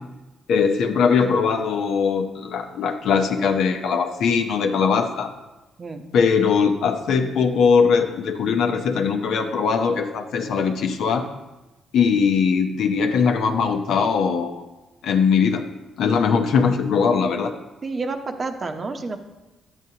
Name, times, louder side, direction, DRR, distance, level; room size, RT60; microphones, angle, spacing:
voice 1, 0.5-5.3 6.1-11.2 11.9-14.7 15.0-15.6 16.0-17.5, left 6 dB, 75° left, 5 dB, 0.8 m, -20 dB
voice 2, 17.8-19.2, right 3 dB, 35° right, 6 dB, 0.8 m, -29 dB
11.0 x 8.2 x 2.9 m, 1.1 s
cardioid pair, 90°, 0 cm